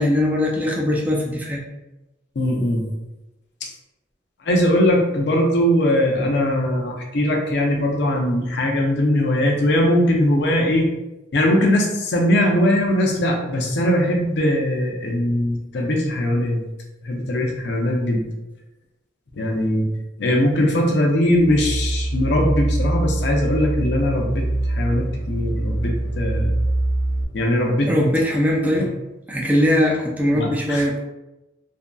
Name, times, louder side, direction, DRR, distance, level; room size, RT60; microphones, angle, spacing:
voice 1, 0.0-1.6 27.9-28.9 29.3-31.0, left 1 dB, 10° right, -2 dB, 0.4 m, -20 dB
voice 2, 2.4-2.9 3.6-3.7 4.4-10.9 11.3-16.6 17.0-18.3 19.4-19.9 20.2-26.6 27.3-27.9 28.8-28.9 30.3-30.8, left 1 dB, 65° left, 1 dB, 0.5 m, -20 dB
sound 1, 21.3-27.2, right 1 dB, 60° right, 0.5 m, -24 dB
2.7 x 2.6 x 2.2 m, 0.99 s
head